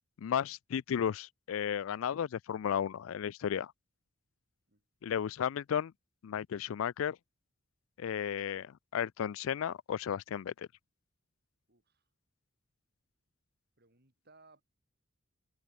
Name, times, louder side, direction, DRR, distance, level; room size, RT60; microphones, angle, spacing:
voice 1, 0.2-3.7 5.0-5.9 6.2-7.2 8.0-10.7, left 8 dB, 80° left, 0.3 m, -34 dB
voice 2, 11.7-12.1 13.8-14.6, right 3 dB, 50° right, 7.7 m, -63 dB
head